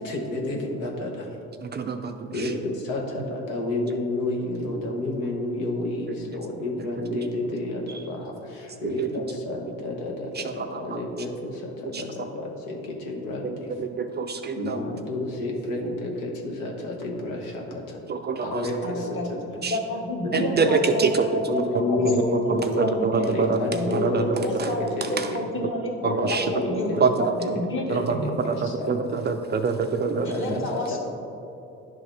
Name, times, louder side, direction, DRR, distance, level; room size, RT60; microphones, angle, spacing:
voice 1, 0.0-1.3 2.0-2.1 2.3-13.7 14.6-18.0 18.4-19.4 20.2-20.3 20.6-20.9 21.5-24.5 25.0-25.4 26.0-26.6 26.9-27.5 27.9-29.2 30.1-31.0, left 2 dB, 80° left, 0 dB, 1.1 m, -30 dB
voice 2, 1.7-2.1 9.0-9.1 14.0-14.8 18.1-18.6 19.6-19.7 20.6-20.7 21.0-21.1 22.8-23.6 24.0-24.2 26.3-26.4 27.0-27.1 28.9-30.3, right 5 dB, 30° right, 7 dB, 0.4 m, -24 dB
voice 3, 18.8-24.1 24.4-27.9 30.2-31.0, left 1 dB, 35° left, -1 dB, 1.5 m, -30 dB
10.5 x 3.8 x 3.3 m, 2.8 s
supercardioid pair, 75°, 34 cm